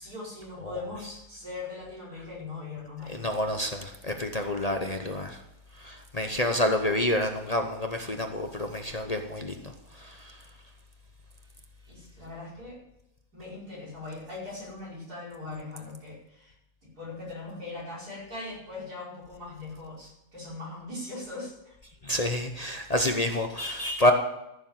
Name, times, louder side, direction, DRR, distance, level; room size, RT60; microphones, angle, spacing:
voice 1, 0.0-3.3 11.9-12.8 13.3-16.5 17.0-21.8, left 3 dB, 90° right, -5 dB, 5.8 m, -40 dB
voice 2, 3.1-5.4 5.8-9.7 10.0-10.4 22.0-24.1, left 1 dB, 30° left, 4 dB, 0.8 m, -28 dB
14.5 x 7.1 x 7.4 m, 0.87 s
omnidirectional pair, 1.6 m